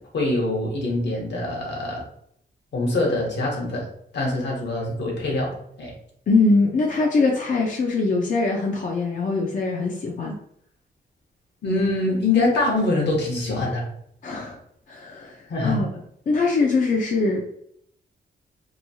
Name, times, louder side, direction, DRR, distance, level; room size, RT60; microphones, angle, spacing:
voice 1, 0.1-2.0 2.7-3.9 4.1-5.9 11.6-13.8 15.5-15.8, left 2 dB, 70° left, -1 dB, 1.0 m, -24 dB
voice 2, 6.3-10.4 14.2-14.6 14.9-15.9 16.3-17.5, left 3 dB, 45° left, -1 dB, 0.5 m, -22 dB
3.0 x 2.3 x 2.7 m, 0.69 s
cardioid pair, 100°, 18 cm